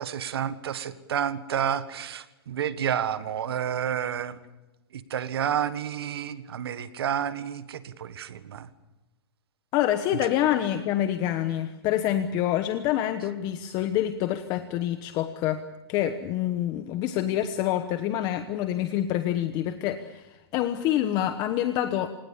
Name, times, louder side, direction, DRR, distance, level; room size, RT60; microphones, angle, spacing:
voice 1, 0.0-4.4 4.9-8.7, right 9 dB, 80° right, 13 dB, 1.5 m, -30 dB
voice 2, 9.7-22.1, left 12 dB, 30° left, 9 dB, 1.1 m, -27 dB
28.0 x 18.5 x 7.3 m, 1.0 s
hypercardioid pair, 155°, 13 cm